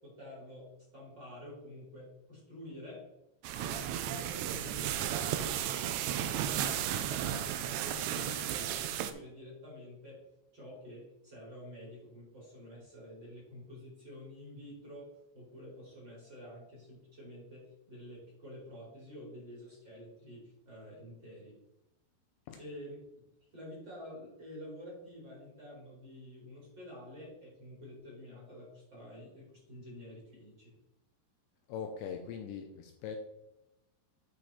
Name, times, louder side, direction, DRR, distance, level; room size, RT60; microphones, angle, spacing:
voice 1, 0.0-3.0 3.5-10.2 10.5-21.6 22.6-23.0 23.5-30.7, left 1 dB, 25° right, -5 dB, 3.3 m, -49 dB
Putting out fire, 3.4-9.1, right 10 dB, 85° right, 2.7 m, -34 dB
voice 2, 31.7-33.2, left 7 dB, 80° left, 4 dB, 2.7 m, -41 dB
11.0 x 4.9 x 4.3 m, 0.92 s
omnidirectional pair, 5.5 m